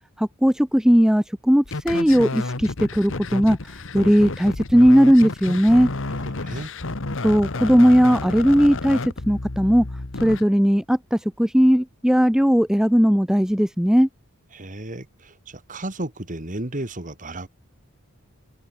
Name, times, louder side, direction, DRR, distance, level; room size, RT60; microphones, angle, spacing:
voice 1, 0.2-5.9 7.2-9.9 10.2-14.1, equal, 5° right, 0.8 m, -18 dB
sound 1, 1.6-10.4, left 2 dB, 60° left, 1.4 m, -31 dB
voice 2, 6.1-6.7 14.5-17.5, right 1 dB, 35° right, 2.4 m, -34 dB
head